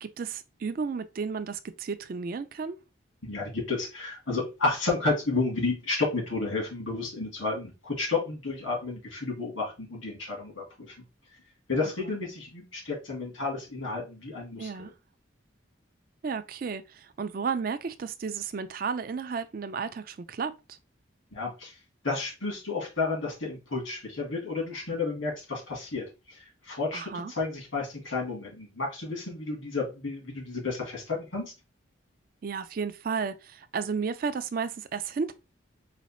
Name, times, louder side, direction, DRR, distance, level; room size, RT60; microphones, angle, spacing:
voice 1, 0.0-2.8 12.0-12.2 14.6-14.9 16.2-20.8 26.9-27.3 32.4-35.3, right 5 dB, 45° right, 0.3 m, -33 dB
voice 2, 3.2-10.9 11.7-14.9 21.3-21.7 22.0-31.5, left 3 dB, 85° left, 2.2 m, -31 dB
4.1 x 2.4 x 4.2 m
head